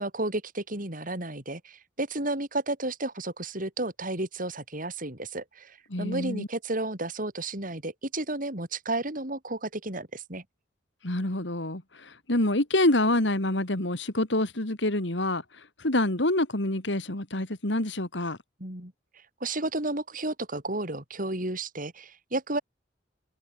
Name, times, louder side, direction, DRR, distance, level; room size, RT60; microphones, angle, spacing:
voice 1, 0.0-10.4 18.6-18.9 19.4-22.6, right 2 dB, 45° right, 6.4 m, -32 dB
voice 2, 5.9-6.5 11.0-15.4 15.8-18.4, left 1 dB, 70° left, 3.2 m, -26 dB
head